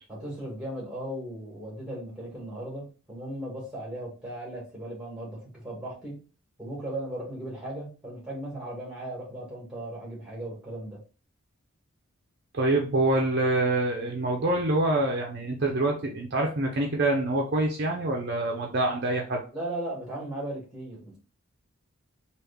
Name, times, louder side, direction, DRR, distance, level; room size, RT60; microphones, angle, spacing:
voice 1, 0.1-6.2 6.6-11.0 19.5-21.2, right 1 dB, 5° right, -4 dB, 1.7 m, -37 dB
voice 2, 12.5-19.4, right 2 dB, 50° right, 0 dB, 0.6 m, -26 dB
3.4 x 2.5 x 3.4 m, 0.36 s
head